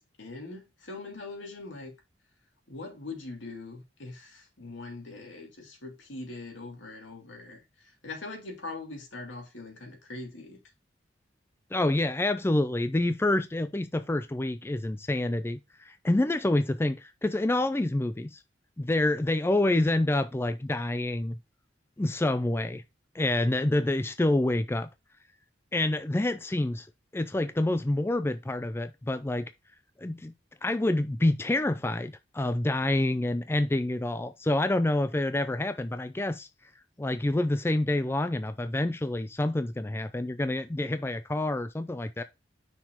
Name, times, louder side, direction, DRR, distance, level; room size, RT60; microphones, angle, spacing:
voice 1, 0.2-1.9 2.7-10.6, left 3 dB, 85° left, 2.5 m, -42 dB
voice 2, 11.7-15.6 15.9-18.4 18.8-21.4 22.0-22.8 23.1-24.9 25.7-26.9 27.1-29.5 30.0-30.3 30.6-36.5 37.0-42.2, left 1 dB, 15° left, 0.4 m, -27 dB
5.9 x 4.2 x 4.5 m
head